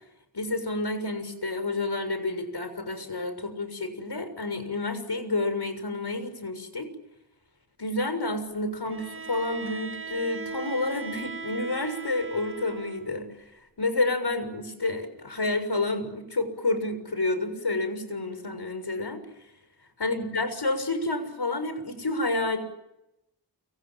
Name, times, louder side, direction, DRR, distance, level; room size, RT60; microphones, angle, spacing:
voice 1, 0.3-6.9 7.8-13.3 13.8-19.2 20.0-22.6, left 2 dB, 70° left, 10 dB, 6.6 m, -29 dB
Bowed string instrument, 8.9-13.2, right 5 dB, 30° right, 2.2 m, -39 dB
29.5 x 26.0 x 7.6 m, 0.87 s
cardioid pair, 45°, 42 cm